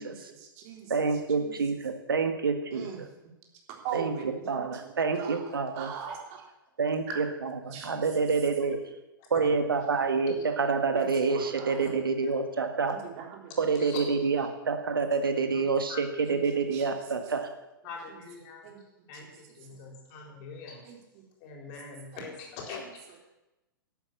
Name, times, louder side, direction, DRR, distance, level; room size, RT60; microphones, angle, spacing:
voice 1, 0.0-0.9 1.3-1.6 2.7-3.0 3.8-4.9 5.1-6.4 7.1-7.2 7.7-8.1 10.2-10.4 10.9-11.8 12.9-13.5 16.3-16.4 16.7-16.9 18.6-18.8 20.9-21.0, right 7 dB, 40° right, 1 dB, 3.6 m, -40 dB
voice 2, 0.9-2.9 3.9-5.9 6.8-8.8 9.3-12.9 13.6-17.5, right 4 dB, 75° right, 7 dB, 1.6 m, -28 dB
voice 3, 7.6-8.1 9.3-9.9 11.8-11.9 12.2-12.3 13.7-14.5 15.5-16.6 17.8-18.6 19.1-20.8 21.4-22.8 23.1-23.2, left 4 dB, 40° left, 1 dB, 4.1 m, -43 dB
11.5 x 8.9 x 8.1 m, 0.97 s
figure-of-eight pair, 110°, 12 cm